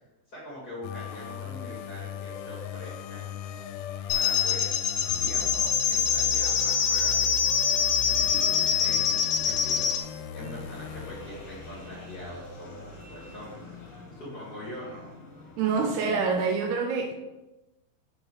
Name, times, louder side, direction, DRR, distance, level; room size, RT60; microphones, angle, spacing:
voice 1, 0.3-3.3 4.1-4.7 5.2-9.9 10.3-13.7 14.1-15.1, left 1 dB, 30° left, -8 dB, 2.3 m, -43 dB
sound 1, 0.8-11.7, left 9 dB, 90° left, 2.8 m, -38 dB
sound 2, 4.1-10.0, left 7 dB, 75° left, 2.5 m, -25 dB
sound 3, 10.4-16.3, left 3 dB, 50° left, 2.4 m, -46 dB
voice 2, 15.6-17.1, right 5 dB, 80° right, 2 dB, 2.5 m, -26 dB
7.4 x 4.8 x 4.8 m, 1.0 s
omnidirectional pair, 4.9 m